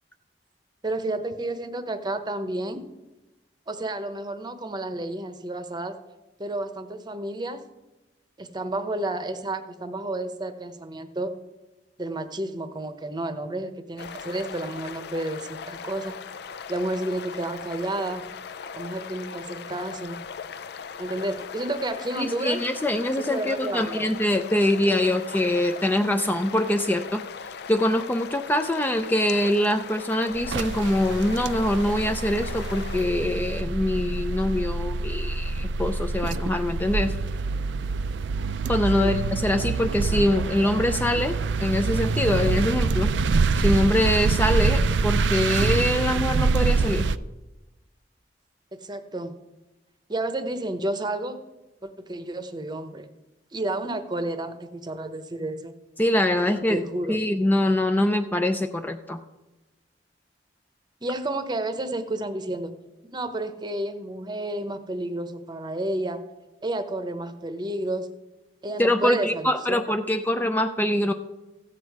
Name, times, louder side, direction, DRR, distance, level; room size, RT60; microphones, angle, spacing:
voice 1, 0.8-2.8 3.7-6.0 6.4-7.6 8.4-11.3 12.0-16.2 16.7-18.3 18.7-20.2 21.0-22.6 23.3-24.1 38.9-39.1 48.7-49.3 50.1-51.4 51.8-53.1 53.5-55.7 56.5-57.2 61.0-62.7 63.1-66.2 66.6-68.1 68.6-69.8, right 1 dB, 25° right, 9 dB, 0.8 m, -31 dB
sound 1, 14.0-33.0, left 6 dB, 65° left, 0.5 m, -39 dB
voice 2, 22.2-27.2 27.7-37.1 38.7-43.1 43.6-47.1 56.0-59.2 68.8-71.1, left 1 dB, 10° left, 7 dB, 0.4 m, -24 dB
sound 2, 30.3-47.2, right 4 dB, 80° right, 0.4 m, -26 dB
15.0 x 8.2 x 4.7 m, 1.0 s
head